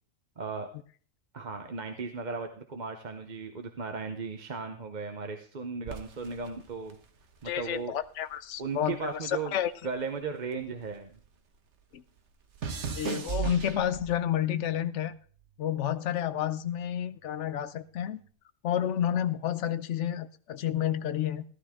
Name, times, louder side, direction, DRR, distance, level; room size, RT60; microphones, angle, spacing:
voice 1, 0.4-0.7 1.3-7.0 7.4-8.0 8.6-9.6 9.8-11.1, right 4 dB, 40° right, 0.9 m, -36 dB
sound 1, 5.8-8.4 8.6-11.3 11.6-14.4 15.1-15.5, right 7 dB, 60° right, 1.4 m, -38 dB
voice 2, 7.4-9.7 11.9-12.0 12.9-15.1 15.6-18.2 18.6-21.4, left 10 dB, 65° left, 1.0 m, -30 dB
15.0 x 11.5 x 3.6 m
omnidirectional pair, 1.4 m